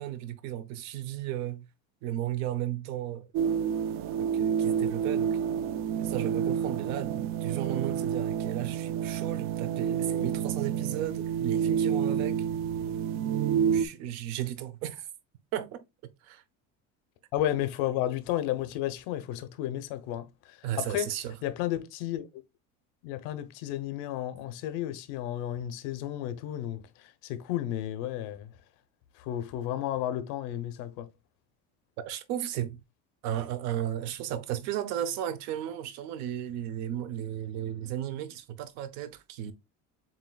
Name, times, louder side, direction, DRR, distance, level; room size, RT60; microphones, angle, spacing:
voice 1, 0.0-1.7 2.0-3.3 4.1-5.4 6.0-12.4 13.7-15.1 15.5-15.8 16.2-16.4 20.6-21.4 32.0-32.8 33.2-39.5, right 11 dB, 65° right, 0.8 m, -34 dB
sound 1, 3.3-13.9, right 8 dB, 45° right, 0.4 m, -29 dB
voice 2, 17.3-21.1 21.4-22.3 23.0-28.5 29.2-31.1, left 12 dB, 80° left, 0.8 m, -32 dB
7.3 x 2.8 x 2.3 m
cardioid pair, 165°, 30 cm